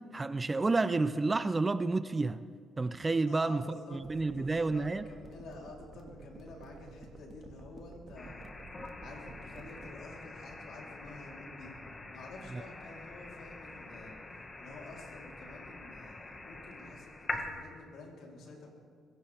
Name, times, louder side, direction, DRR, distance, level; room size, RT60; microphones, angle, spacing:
voice 1, 0.1-2.4 2.8-3.6 3.9-5.0 12.5-12.6, right 3 dB, 25° right, 14 dB, 0.5 m, -30 dB
voice 2, 3.3-4.1 4.4-8.5 9.0-11.8 12.1-14.2 14.6-18.7, left 2 dB, 75° left, -1 dB, 3.7 m, -49 dB
sound 1, 4.0-9.9, right 4 dB, 50° right, 2.0 m, -51 dB
sound 2, 8.2-17.5, left 2 dB, 25° left, 1.7 m, -45 dB
25.5 x 15.5 x 3.5 m, 2.1 s
cardioid pair, 90°, 0 cm